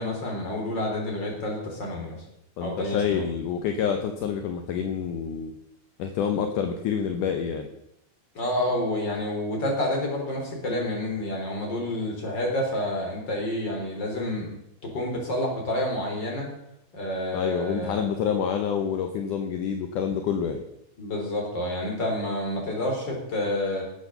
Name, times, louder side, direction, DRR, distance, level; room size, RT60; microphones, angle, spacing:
voice 1, 0.0-2.2 2.6-3.2 8.3-14.5 14.8-16.5 16.9-18.0 21.0-23.8, left 1 dB, 30° left, 0 dB, 4.2 m, -29 dB
voice 2, 2.6-5.5 6.0-7.7 17.3-20.6, left 7 dB, 70° left, 6 dB, 2.2 m, -27 dB
19.5 x 8.0 x 6.8 m, 0.83 s
omnidirectional pair, 4.6 m